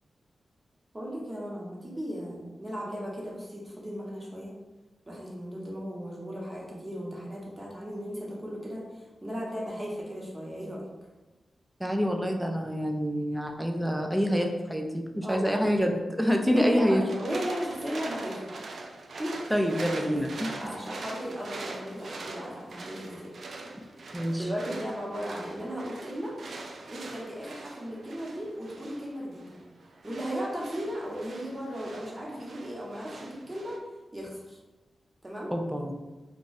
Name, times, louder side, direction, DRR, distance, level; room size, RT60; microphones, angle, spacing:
voice 1, 0.9-4.5 5.1-10.9 15.2-15.5 16.5-18.4 19.2-19.4 20.1-20.2 20.6-23.3 24.4-26.4 26.9-29.6 30.0-33.8 34.1-34.6 35.2-35.5, equal, 25° right, -4 dB, 1.1 m, -36 dB
voice 2, 11.8-17.0 19.5-20.6 24.1-24.5 35.5-35.9, equal, 5° right, 3 dB, 0.5 m, -27 dB
sound 1, 17.1-33.8, right 3 dB, 70° right, 0.3 m, -43 dB
2.4 x 2.4 x 4.0 m, 1.2 s
cardioid pair, 45°, 0 cm